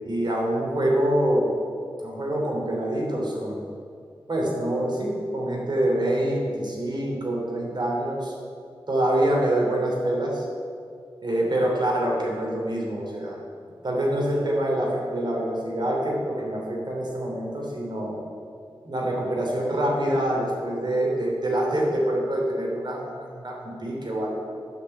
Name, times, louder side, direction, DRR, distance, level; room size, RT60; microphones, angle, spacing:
voice 1, 0.0-1.5 2.0-3.6 4.3-8.3 8.9-10.4 11.2-13.4 13.8-18.2 18.8-24.4, right 1 dB, 50° right, -2 dB, 3.2 m, -25 dB
10.5 x 6.0 x 8.7 m, 2.3 s
cardioid pair, 65°, 9 cm